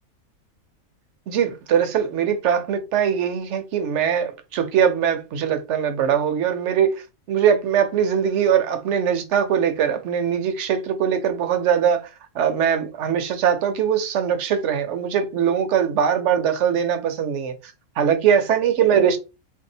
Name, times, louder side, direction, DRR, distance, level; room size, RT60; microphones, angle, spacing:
voice 1, 1.3-12.1 12.3-17.5 18.0-19.2, right 8 dB, 65° right, 0.9 m, -21 dB
3.5 x 2.7 x 2.7 m
omnidirectional pair, 1.5 m